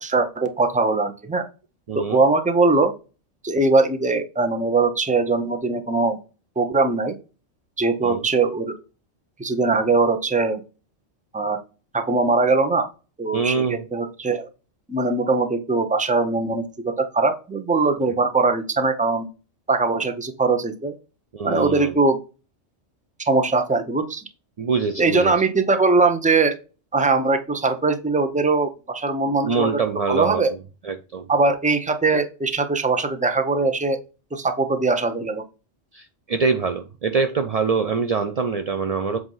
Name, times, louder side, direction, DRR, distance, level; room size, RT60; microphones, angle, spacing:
voice 1, 0.0-1.5 1.9-2.9 3.4-6.2 6.6-7.2 7.8-8.8 9.4-10.6 11.3-11.6 11.9-12.9 13.2-14.5 14.9-19.3 19.7-21.0 21.4-22.2 23.2-24.2 25.0-26.5 26.9-29.8 30.1-30.5 31.3-34.0 34.3-35.4, right 3 dB, 10° right, 6 dB, 0.4 m, -21 dB
voice 2, 1.9-2.2 8.0-8.2 13.3-13.8 21.3-22.0 24.6-25.3 29.4-30.4 30.8-31.3 35.9-39.2, right 5 dB, 75° right, 8 dB, 0.3 m, -24 dB
7.8 x 2.6 x 5.4 m, 0.33 s
omnidirectional pair, 1.3 m